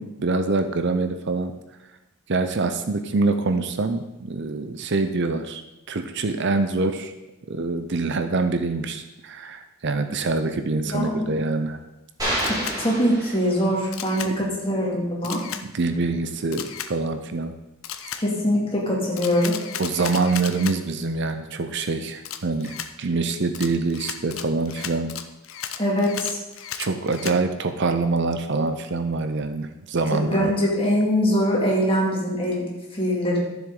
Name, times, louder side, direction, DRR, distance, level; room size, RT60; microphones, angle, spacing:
voice 1, 0.0-1.5 2.3-5.6 5.9-7.1 7.5-11.8 14.3-14.4 15.6-17.5 19.8-25.1 26.8-30.5, right 3 dB, 55° right, 8 dB, 0.6 m, -25 dB
voice 2, 10.9-11.3 12.5-15.4 18.2-19.5 25.8-26.4 30.1-33.4, equal, 25° left, -4 dB, 2.4 m, -23 dB
sound 1, 12.2-13.9, right 1 dB, 15° right, 2.9 m, -28 dB
Camera, 12.4-12.8 13.9-14.3 15.2-15.6 16.5-16.9 17.8-18.2 19.2-20.8 22.2-22.9 23.5-27.4, left 9 dB, 65° left, 0.7 m, -34 dB
12.5 x 7.2 x 3.8 m, 0.99 s
head